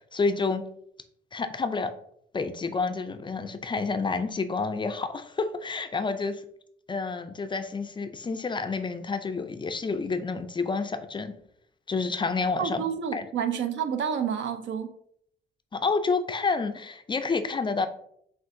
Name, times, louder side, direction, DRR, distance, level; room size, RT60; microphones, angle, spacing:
voice 1, 0.1-0.6 1.3-1.9 2.3-6.4 6.9-11.3 11.9-12.8 13.1-13.3 15.7-17.9, left 4 dB, 25° left, 0.3 m, -29 dB
voice 2, 12.6-14.9, right 7 dB, 70° right, 0.5 m, -29 dB
6.1 x 2.4 x 2.5 m
cardioid pair, 90°, 20 cm